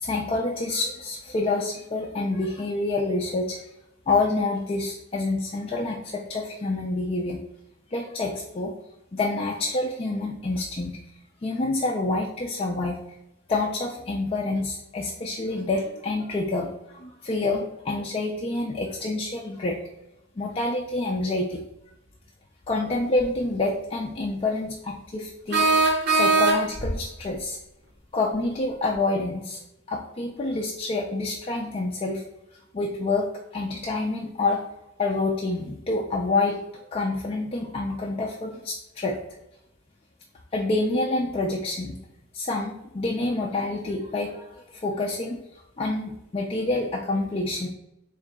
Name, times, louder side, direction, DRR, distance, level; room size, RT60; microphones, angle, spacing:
voice 1, 0.0-3.6 4.1-7.4 7.9-8.7 9.1-11.0 11.4-13.0 13.5-19.8 20.4-21.6 22.7-25.7 26.1-27.6 28.1-29.6 29.9-32.2 32.7-33.3 33.5-34.6 35.0-36.6 36.9-39.2 40.5-42.0 42.3-45.4 45.8-47.7, left 2 dB, 30° left, -1 dB, 0.4 m, -27 dB
sound 1, 23.2-23.3 25.5-26.9, right 3 dB, 55° right, 0.8 m, -20 dB
3.7 x 3.1 x 3.5 m, 0.87 s
head